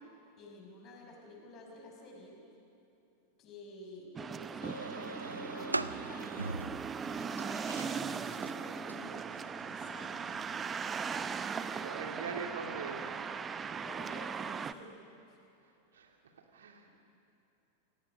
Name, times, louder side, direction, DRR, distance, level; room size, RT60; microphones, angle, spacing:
voice 1, 0.0-2.4 3.4-6.8 7.2-10.2 13.8-14.9 15.3-15.4, left 2 dB, 30° left, 0 dB, 5.7 m, -51 dB
sound 1, 4.2-14.7, right 6 dB, 20° right, 0.7 m, -39 dB
sound 2, 4.6-10.8, right 2 dB, 80° right, 0.6 m, -42 dB
voice 2, 11.7-13.1 15.9-16.1 16.5-17.0, right 5 dB, 65° right, 3 dB, 2.3 m, -42 dB
28.0 x 18.0 x 6.5 m, 2.9 s
figure-of-eight pair, 90°, 0 cm